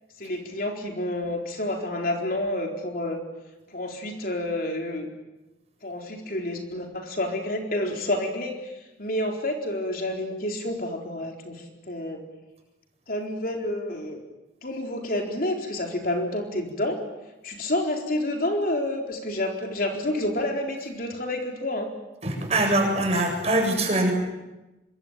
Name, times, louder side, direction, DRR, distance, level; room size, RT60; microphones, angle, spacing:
voice 1, 0.2-3.2 3.7-5.1 5.8-8.7 9.0-12.2 13.1-14.2 14.6-17.0 17.4-21.9, left 1 dB, 50° left, 2 dB, 4.2 m, -29 dB
voice 2, 22.2-24.1, right 1 dB, 35° right, 2 dB, 7.8 m, -23 dB
26.0 x 24.0 x 9.2 m, 1.0 s
head